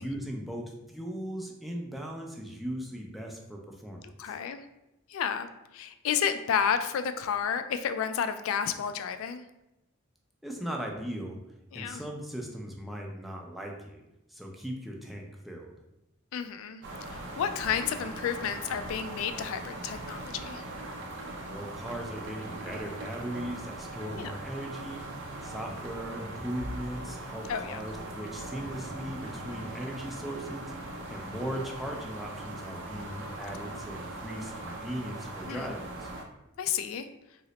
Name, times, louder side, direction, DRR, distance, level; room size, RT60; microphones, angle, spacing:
voice 1, 0.0-4.3 10.4-11.4 11.7-14.0 14.3-15.7 21.4-25.1 25.4-36.1, equal, ahead, 0 dB, 0.4 m, -38 dB
voice 2, 4.2-4.6 5.1-5.5 5.7-9.4 11.7-12.0 16.3-16.8 17.1-20.6 24.1-24.3 27.5-27.8 35.5-35.7 36.6-37.1, left 7 dB, 75° left, 10 dB, 0.3 m, -31 dB
sound 1, 16.8-36.2, right 2 dB, 60° right, 0.5 m, -40 dB
2.9 x 2.1 x 3.9 m, 0.90 s
head